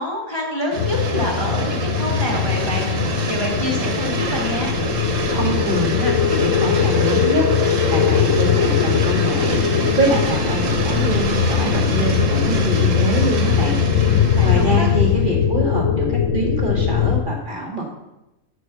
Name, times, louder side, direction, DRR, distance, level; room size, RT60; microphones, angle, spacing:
voice 1, 0.0-4.7 14.0-14.9, left 1 dB, 20° left, -3 dB, 1.5 m, -27 dB
sound 1, 0.7-15.2, right 4 dB, 65° right, 1.5 m, -27 dB
sound 2, 0.8-17.2, left 8 dB, 65° left, 1.1 m, -20 dB
voice 2, 5.3-17.9, right 2 dB, 35° right, -1 dB, 1.9 m, -25 dB
11.0 x 4.5 x 7.0 m, 0.94 s
omnidirectional pair, 1.5 m